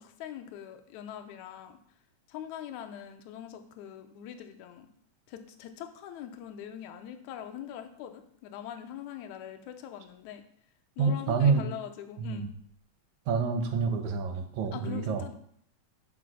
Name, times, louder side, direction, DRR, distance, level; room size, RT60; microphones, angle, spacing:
voice 1, 0.0-1.8 2.3-4.9 5.3-10.4 11.0-12.5 14.7-15.3, left 9 dB, 80° left, 7 dB, 2.1 m, -42 dB
voice 2, 11.0-11.7 12.2-12.5 13.3-15.2, right 5 dB, 75° right, 7 dB, 2.1 m, -27 dB
6.1 x 5.0 x 6.1 m, 0.64 s
omnidirectional pair, 3.5 m